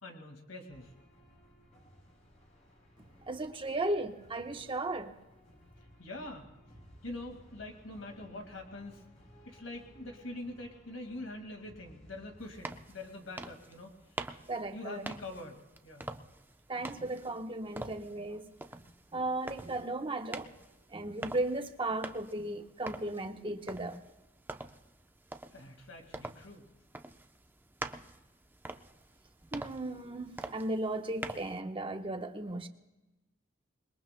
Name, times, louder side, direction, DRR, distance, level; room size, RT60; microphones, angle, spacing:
voice 1, 0.0-0.9 6.0-6.5 7.0-9.0 9.5-14.2 14.7-16.1 25.5-26.7, left 2 dB, 75° left, 1.9 m, -44 dB
sound 1, 0.7-13.8, equal, 40° left, 5.1 m, -59 dB
voice 2, 3.3-5.1 14.5-15.0 16.7-18.8 19.1-20.5 20.9-24.0 29.5-32.7, right 2 dB, 25° right, 1.1 m, -36 dB
sound 2, 12.4-31.6, right 2 dB, 10° right, 0.7 m, -46 dB
27.0 x 22.0 x 2.2 m
head